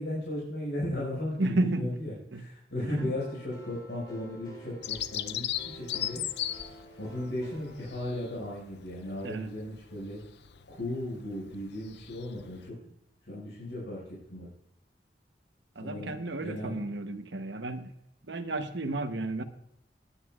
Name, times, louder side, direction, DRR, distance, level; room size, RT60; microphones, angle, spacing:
voice 1, 0.0-6.2 7.0-10.2 10.7-12.8 13.2-14.5 15.8-16.8, left 1 dB, 90° left, -6 dB, 5.5 m, -36 dB
voice 2, 1.4-2.0 2.3-2.4 3.0-3.1 9.2-9.5 15.7-17.9 18.3-19.4, right 2 dB, 90° right, 7 dB, 1.0 m, -32 dB
sound 1, 3.0-8.9, right 1 dB, 25° left, 3.1 m, -50 dB
Bird vocalization bird call bird song, 4.8-12.7, left 12 dB, 70° left, 0.6 m, -38 dB
19.5 x 10.0 x 2.4 m, 0.76 s
head